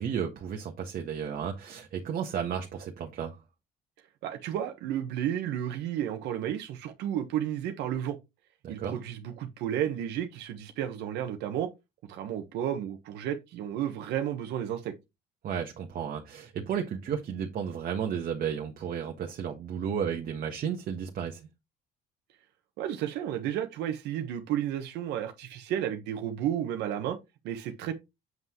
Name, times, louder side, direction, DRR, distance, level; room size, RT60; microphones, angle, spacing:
voice 1, 0.0-3.4 8.6-9.0 15.4-21.4, right 8 dB, 55° right, 1.4 m, -33 dB
voice 2, 4.2-8.2 8.7-11.7 12.1-14.9 22.8-27.2 27.4-27.9, right 10 dB, 85° right, 1.2 m, -32 dB
7.8 x 5.6 x 3.1 m
cardioid pair, 110°, 17 cm